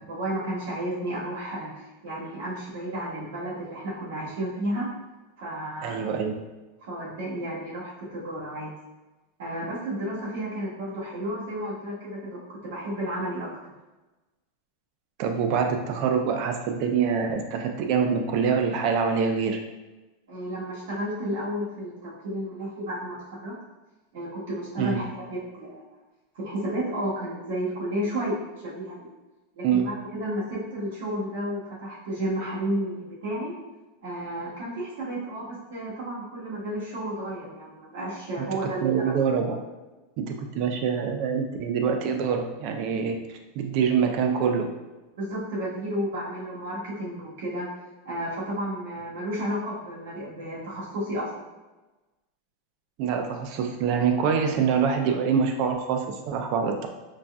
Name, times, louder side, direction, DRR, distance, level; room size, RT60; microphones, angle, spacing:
voice 1, 0.0-4.9 5.4-6.1 6.8-8.7 9.4-13.5 20.3-23.6 24.1-25.8 26.3-29.1 29.5-33.5 34.0-39.1 45.2-47.7 48.0-51.5, right 1 dB, 80° right, -7 dB, 1.3 m, -32 dB
voice 2, 5.8-6.3 15.2-19.6 24.8-25.0 29.6-29.9 38.4-39.6 40.2-43.2 43.6-44.7 53.0-56.9, right 6 dB, 45° right, 5 dB, 0.4 m, -25 dB
4.0 x 2.3 x 2.3 m, 1.1 s
supercardioid pair, 160°, 0 cm